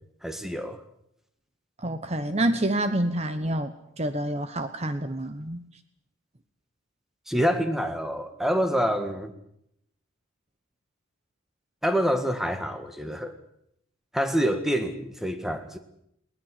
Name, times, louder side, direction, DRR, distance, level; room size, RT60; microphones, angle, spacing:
voice 1, 0.2-0.8 7.3-9.3 11.8-13.3 14.1-15.8, equal, ahead, 7 dB, 1.7 m, -26 dB
voice 2, 1.8-5.6, right 1 dB, 30° right, 10 dB, 1.0 m, -28 dB
20.5 x 19.5 x 8.3 m, 0.76 s
head